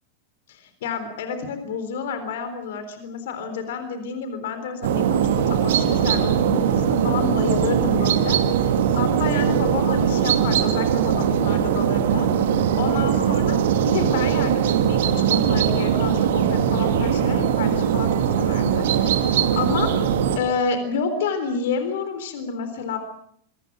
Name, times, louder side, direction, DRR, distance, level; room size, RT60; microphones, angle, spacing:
voice 1, 0.5-13.6 13.9-19.9 20.4-23.0, left 5 dB, 55° left, 9 dB, 3.9 m, -29 dB
sound 1, 4.8-20.4, right 8 dB, 55° right, 2.4 m, -20 dB
27.0 x 23.5 x 6.2 m, 0.66 s
figure-of-eight pair, 90°, 0 cm